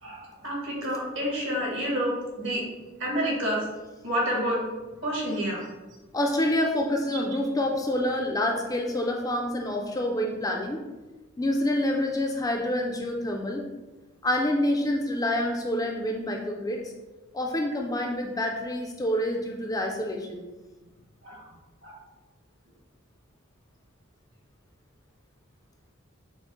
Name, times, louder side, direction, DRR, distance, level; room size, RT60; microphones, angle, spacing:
voice 1, 0.0-2.6 3.0-3.6 4.0-4.6 5.0-5.6 21.2-21.4 21.8-22.0, equal, 65° right, -3 dB, 1.5 m, -29 dB
voice 2, 6.1-10.9 11.4-13.6 14.2-16.8 17.3-20.5, left 1 dB, 20° left, 1 dB, 0.4 m, -27 dB
6.0 x 2.0 x 3.6 m, 1.1 s
head